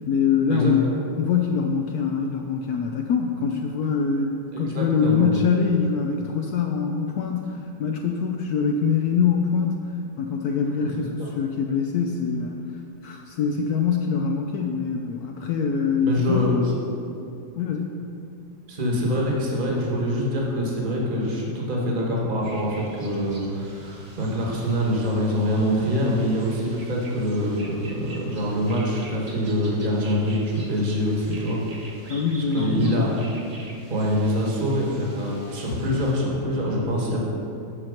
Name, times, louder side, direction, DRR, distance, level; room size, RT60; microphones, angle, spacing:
voice 1, 0.1-0.9 1.2-12.6 13.0-16.6 17.6-18.0 32.1-33.1, left 6 dB, 70° left, 2 dB, 0.9 m, -24 dB
voice 2, 4.5-5.3 10.8-11.3 16.0-16.7 18.7-31.6 32.5-33.1 33.9-37.2, equal, 30° right, -3 dB, 1.3 m, -25 dB
sound 1, 22.4-36.1, right 2 dB, 50° right, 0.4 m, -46 dB
8.6 x 4.4 x 6.3 m, 2.8 s
omnidirectional pair, 2.0 m